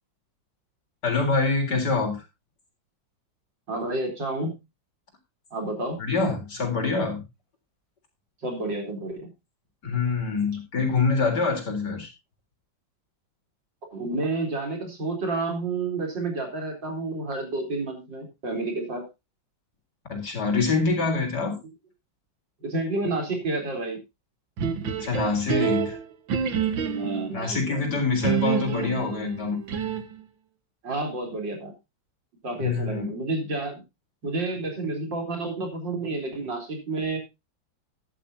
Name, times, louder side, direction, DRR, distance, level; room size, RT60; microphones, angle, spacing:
voice 1, 1.0-2.2 6.0-7.2 9.8-12.1 20.1-21.5 25.0-26.0 27.3-29.6 32.6-33.1, left 4 dB, 60° left, 4 dB, 4.5 m, -25 dB
voice 2, 3.7-4.5 5.5-6.0 8.4-9.3 13.9-19.0 22.6-24.0 26.8-27.8 30.8-31.7 32.4-33.8 34.2-37.2, right 2 dB, 70° right, 3 dB, 4.6 m, -30 dB
sound 1, 24.6-27.4 28.2-30.2, right 7 dB, 90° right, 2.2 m, -27 dB
14.5 x 11.0 x 2.8 m, 0.25 s
omnidirectional pair, 2.0 m